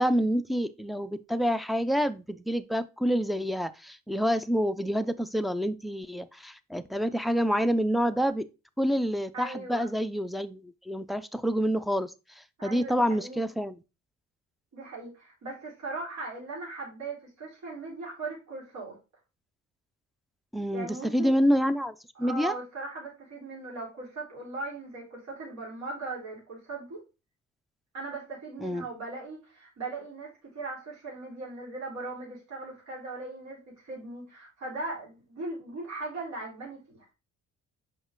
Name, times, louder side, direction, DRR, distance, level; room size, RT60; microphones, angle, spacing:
voice 1, 0.0-8.5 8.8-13.8 20.5-22.6 28.6-28.9, equal, ahead, 0.5 m, -28 dB
voice 2, 9.3-9.9 12.6-13.4 14.7-19.0 20.7-21.4 22.1-27.0 27.9-37.0, right 3 dB, 65° right, 4.1 m, -39 dB
5.4 x 5.4 x 3.7 m
cardioid pair, 90°, 30 cm